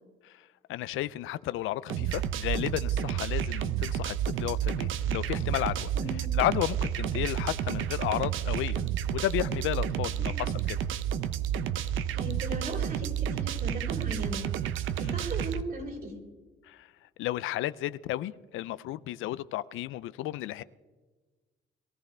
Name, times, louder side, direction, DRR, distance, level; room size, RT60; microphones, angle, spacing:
voice 1, 0.7-10.8 15.0-15.2 16.7-16.9 17.2-20.6, left 14 dB, 90° left, 17 dB, 0.5 m, -33 dB
sound 1, 1.9-15.6, right 9 dB, 85° right, 0.7 m, -30 dB
voice 2, 5.9-6.4 10.2-10.5 12.1-14.5 15.0-16.2, right 1 dB, 50° right, 1 dB, 4.4 m, -38 dB
22.0 x 14.0 x 3.4 m, 1.3 s
cardioid pair, 90°, 20 cm